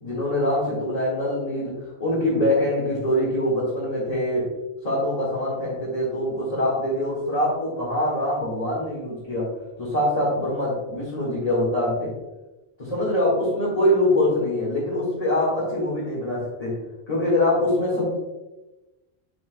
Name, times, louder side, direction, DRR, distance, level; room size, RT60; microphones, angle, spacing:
voice 1, 0.0-1.7 2.0-4.5 4.8-9.5 9.8-12.1 12.8-16.8 17.1-18.2, left 1 dB, 40° left, -8 dB, 1.8 m, -24 dB
10.0 x 4.5 x 2.2 m, 1.0 s
omnidirectional pair, 1.1 m